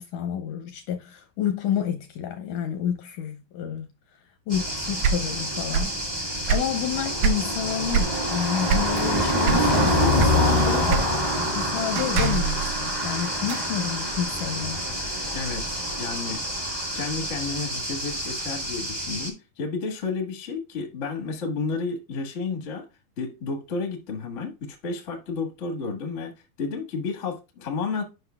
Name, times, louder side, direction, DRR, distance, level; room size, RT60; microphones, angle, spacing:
voice 1, 0.0-3.9 4.5-11.1 11.5-14.8, left 9 dB, 80° left, 1.9 m, -30 dB
sound 1, 4.5-19.3, equal, 45° right, 0.4 m, -26 dB
sound 2, 5.0-6.0 6.3-7.5 7.9-8.2 8.7-9.1 9.4-11.3, right 7 dB, 85° right, 2.4 m, -24 dB
sound 3, 8.7-9.6 10.0-10.3 10.6-11.2 12.0-13.7, right 5 dB, 65° right, 2.3 m, -31 dB
voice 2, 15.3-16.4 16.9-22.8 23.2-26.3 26.6-28.0, left 4 dB, 60° left, 0.7 m, -31 dB
9.5 x 5.6 x 2.3 m
omnidirectional pair, 4.2 m